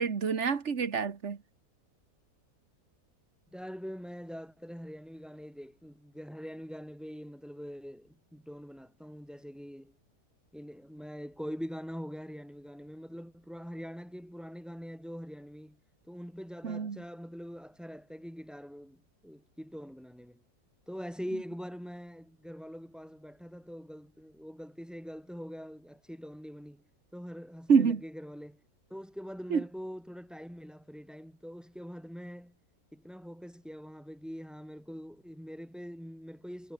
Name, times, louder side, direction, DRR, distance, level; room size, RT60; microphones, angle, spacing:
voice 1, 0.0-1.4 16.6-17.0 27.7-28.0 29.5-29.6, right 6 dB, 45° right, 1.8 m, -27 dB
voice 2, 3.5-9.9 10.5-15.8 16.1-20.4 20.9-26.8 27.1-28.6 28.9-32.5 32.9-36.7, equal, ahead, 5.3 m, -43 dB
omnidirectional pair, 1.7 m